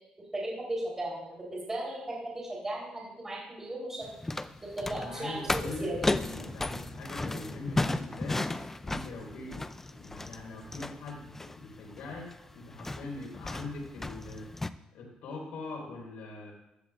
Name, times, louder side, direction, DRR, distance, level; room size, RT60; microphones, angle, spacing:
voice 1, 0.3-4.2 4.6-6.0, right 1 dB, 20° right, -5 dB, 3.9 m, -36 dB
sound 1, 4.0-14.7, left 2 dB, 15° left, 0.5 m, -35 dB
voice 2, 4.8-8.5 8.8-9.6 9.9-14.5 14.9-16.5, left 2 dB, 85° left, -2 dB, 4.7 m, -42 dB
15.5 x 12.5 x 2.5 m, 0.88 s
cardioid pair, 110°, 2 cm